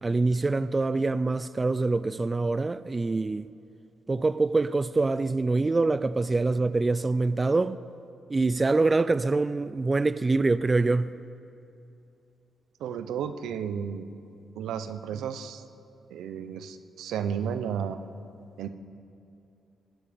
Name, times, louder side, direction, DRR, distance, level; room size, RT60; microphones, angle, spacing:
voice 1, 0.0-3.5 4.1-7.8 8.3-11.2, right 3 dB, 30° right, 0.4 m, -25 dB
voice 2, 12.8-14.1 14.5-15.6 16.1-18.0 18.6-18.7, right 8 dB, 85° right, 0.7 m, -33 dB
19.0 x 10.5 x 5.2 m
cardioid pair, 75°, 0 cm